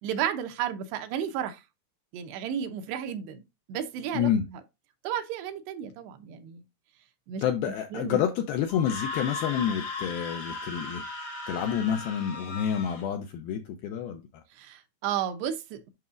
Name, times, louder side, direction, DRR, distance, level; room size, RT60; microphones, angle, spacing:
voice 1, 0.0-1.6 2.1-3.4 3.7-4.6 5.0-6.6 7.3-7.4 7.9-8.2 14.6-15.9, right 9 dB, 80° right, 2.9 m, -33 dB
voice 2, 7.4-11.0 11.5-14.2, left 9 dB, 80° left, 2.2 m, -28 dB
Screaming, 8.7-13.0, left 3 dB, 55° left, 1.3 m, -37 dB
9.4 x 5.9 x 2.4 m
omnidirectional pair, 5.0 m